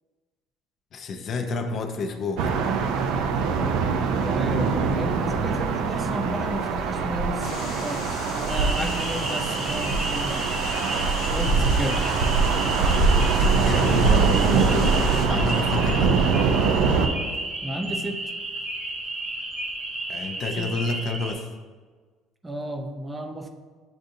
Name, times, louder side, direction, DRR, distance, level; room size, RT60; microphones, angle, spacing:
voice 1, 0.9-2.6 9.1-9.3 13.3-15.0 15.3-16.2 20.1-21.5, left 3 dB, 50° left, 5 dB, 0.5 m, -30 dB
sound 1, 2.4-17.1, right 4 dB, 75° right, 0.4 m, -23 dB
voice 2, 4.2-10.5 11.3-12.0 17.6-18.2 20.6-20.7 22.4-23.5, right 1 dB, 15° right, 5 dB, 0.5 m, -32 dB
sound 2, 7.4-15.3, left 3 dB, 80° left, 0.8 m, -38 dB
sound 3, 8.5-21.3, right 2 dB, 40° right, 1.1 m, -32 dB
7.7 x 2.6 x 2.6 m, 1.5 s
supercardioid pair, 100°, 0 cm